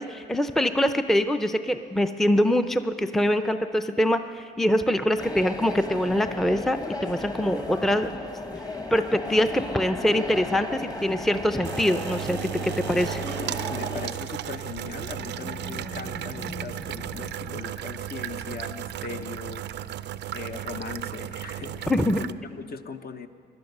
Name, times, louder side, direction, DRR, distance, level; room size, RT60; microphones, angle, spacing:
voice 1, 0.0-8.1 8.9-13.2 21.9-22.2, equal, ahead, 9 dB, 0.5 m, -24 dB
sound 1, 5.2-14.1, left 2 dB, 20° left, 1.1 m, -35 dB
sound 2, 9.7-22.3, right 12 dB, 60° right, 0.4 m, -35 dB
voice 2, 13.7-23.3, left 5 dB, 50° left, 7 dB, 0.9 m, -39 dB
sound 3, 14.4-20.0 20.3-22.5, left 1 dB, 80° left, 5.4 m, -45 dB
17.5 x 11.5 x 6.7 m, 2.3 s
cardioid pair, 90°, 20 cm